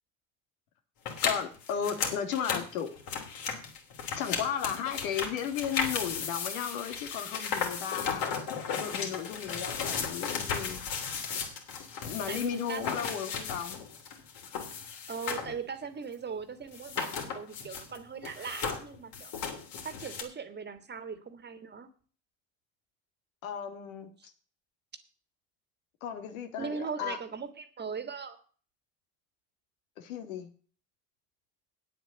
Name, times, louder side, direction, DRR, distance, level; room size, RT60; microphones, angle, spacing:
sound 1, 1.0-15.6 15.8-15.9 16.7-18.0 18.2-20.2, left 6 dB, 60° left, 3.3 m, -35 dB
voice 1, 1.2-2.9 4.2-8.3 8.7-10.8 12.0-13.8 23.4-24.1 26.0-27.2 30.0-30.5, left 8 dB, 75° left, 8 dB, 2.2 m, -35 dB
voice 2, 12.3-13.2 15.1-19.3 19.8-21.9 24.2-24.3 26.6-28.4, right 6 dB, 25° right, 11 dB, 1.8 m, -39 dB
9.3 x 8.0 x 6.9 m, 0.41 s
supercardioid pair, 95°, 41 cm